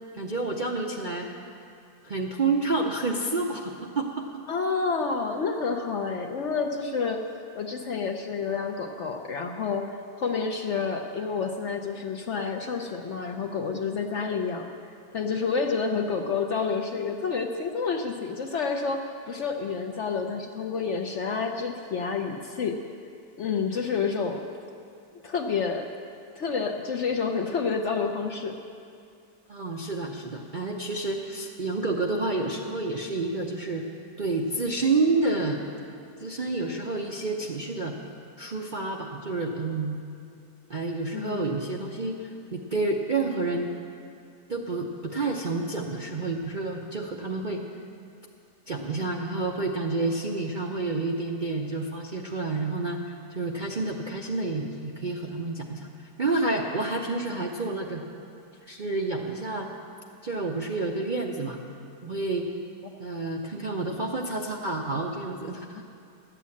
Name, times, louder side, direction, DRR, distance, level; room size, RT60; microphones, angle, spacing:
voice 1, 0.1-1.3 2.0-4.3 29.5-33.8 34.2-35.6 36.2-38.0 38.4-40.0 40.7-43.7 44.5-47.6 48.7-53.0 53.3-55.9 56.2-58.0 58.7-59.7 60.2-61.6 62.0-62.5 63.0-65.8, right 3 dB, 45° right, 0 dB, 0.6 m, -29 dB
voice 2, 4.5-7.2 7.5-14.7 15.1-22.8 23.4-24.4 25.2-25.9 26.4-28.6 41.1-41.6, left 5 dB, 60° left, 4 dB, 0.8 m, -29 dB
12.0 x 8.2 x 8.4 m, 2.4 s
omnidirectional pair, 1.8 m